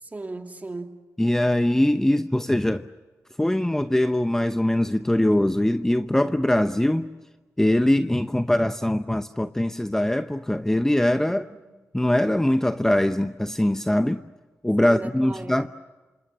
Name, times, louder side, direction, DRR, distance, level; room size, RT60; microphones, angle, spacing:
voice 1, 0.0-1.0 11.3-11.6 14.8-15.7, right 2 dB, 30° right, 2.9 m, -37 dB
voice 2, 1.2-2.9 3.4-7.1 7.6-11.4 11.9-14.2 14.6-15.7, left 1 dB, 10° left, 0.8 m, -22 dB
28.0 x 27.0 x 7.5 m
cardioid pair, 80°, 5 cm